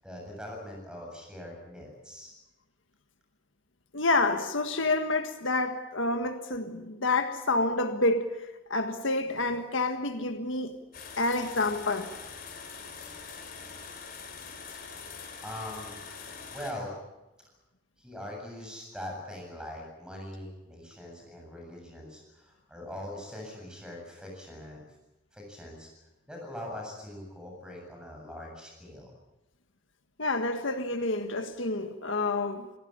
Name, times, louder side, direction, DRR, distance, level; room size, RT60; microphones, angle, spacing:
voice 1, 0.0-2.3 14.9-16.0 16.5-16.9 18.0-24.8 25.3-25.9 26.3-29.1, left 1 dB, 5° right, 7.7 m, -42 dB
voice 2, 3.9-10.8 11.2-12.1 30.2-32.7, left 2 dB, 70° left, 1.7 m, -28 dB
sound 1, 10.9-16.7, left 5 dB, 45° left, 3.6 m, -44 dB
26.5 x 17.0 x 8.8 m
head